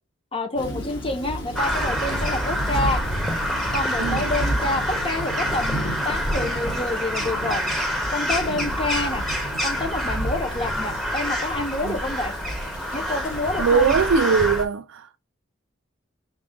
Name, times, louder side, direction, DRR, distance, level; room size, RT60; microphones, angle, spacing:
voice 1, 0.3-3.0 3.7-7.6 8.1-9.2 9.6-12.3 12.9-14.0, left 2 dB, 30° left, 0.9 m, -28 dB
Thunder / Rain, 0.6-14.4, right 1 dB, 70° left, 2.5 m, -33 dB
Crow, 1.6-14.7, equal, ahead, 0.9 m, -27 dB
voice 2, 4.0-4.4 8.5-8.7 11.8-12.0 13.6-15.2, right 5 dB, 75° right, 0.3 m, -22 dB
5.5 x 2.4 x 3.6 m
head